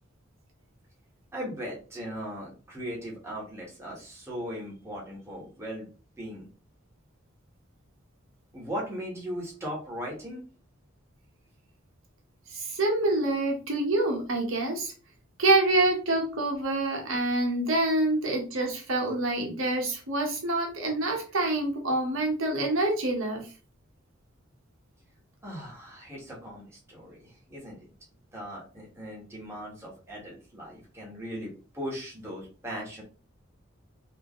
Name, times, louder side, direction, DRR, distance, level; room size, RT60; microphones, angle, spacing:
voice 1, 1.3-5.9 6.2-6.5 8.5-10.4 25.4-27.9 28.3-33.0, equal, 15° right, -4 dB, 1.6 m, -38 dB
voice 2, 12.5-14.9 15.4-23.4, right 2 dB, 80° right, 1 dB, 1.3 m, -26 dB
4.9 x 2.8 x 3.1 m, 0.35 s
head